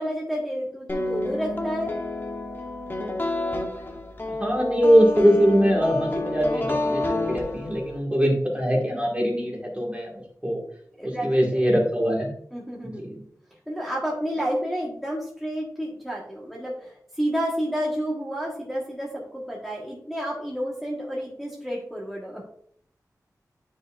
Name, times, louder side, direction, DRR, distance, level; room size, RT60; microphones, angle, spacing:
voice 1, 0.0-1.9 11.0-11.7 12.5-13.1 13.7-22.5, equal, ahead, -5 dB, 1.3 m, -30 dB
sound 1, 0.9-8.0, left 2 dB, 35° left, 1.0 m, -29 dB
voice 2, 4.4-10.1 10.4-10.6 11.0-12.3 12.8-13.2, equal, 20° right, -1 dB, 1.8 m, -22 dB
9.4 x 4.7 x 2.4 m, 0.66 s
wide cardioid pair, 95°, 7 cm